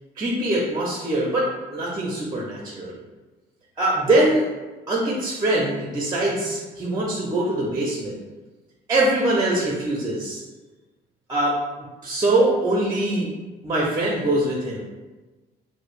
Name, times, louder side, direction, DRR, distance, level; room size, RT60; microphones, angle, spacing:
voice 1, 0.2-2.9 3.8-4.5 4.9-8.2 8.9-10.4 11.3-13.3 13.6-14.8, right 1 dB, 20° right, -3 dB, 0.6 m, -23 dB
4.7 x 2.1 x 2.4 m, 1.2 s
cardioid pair, 110°, 17 cm